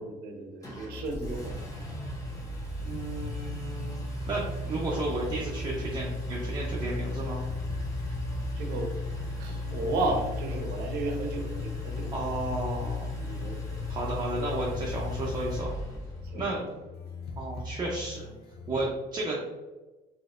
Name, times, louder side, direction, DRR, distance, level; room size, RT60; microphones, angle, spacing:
voice 1, 0.0-1.7 8.6-12.1 13.2-13.8 16.3-16.5, right 2 dB, 75° right, 3 dB, 0.7 m, -34 dB
Engine, 0.6-16.3, left 2 dB, 20° left, 1.1 m, -35 dB
sound 1, 0.8-18.9, left 2 dB, 70° left, 0.6 m, -43 dB
voice 2, 2.8-7.4 12.1-13.1 13.9-15.7 16.3-16.6 17.4-18.2 18.7-19.5, right 2 dB, 25° right, -4 dB, 0.6 m, -33 dB
3.8 x 2.7 x 2.5 m, 1.1 s
cardioid pair, 110°, 17 cm